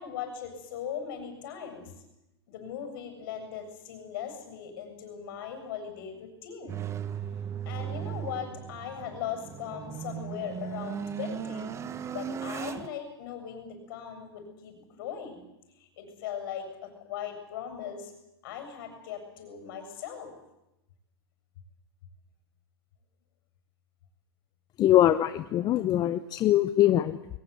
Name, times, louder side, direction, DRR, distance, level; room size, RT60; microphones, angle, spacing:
voice 1, 0.0-1.9 2.5-6.8 7.6-11.7 12.1-15.4 15.8-18.1 18.4-20.3, left 8 dB, 55° left, 7 dB, 7.2 m, -39 dB
sound 1, 6.7-12.9, right 8 dB, 20° right, 1.3 m, -37 dB
voice 2, 24.8-27.4, left 13 dB, 30° left, 12 dB, 0.9 m, -23 dB
21.5 x 20.0 x 8.4 m, 0.89 s
hypercardioid pair, 110°, 14 cm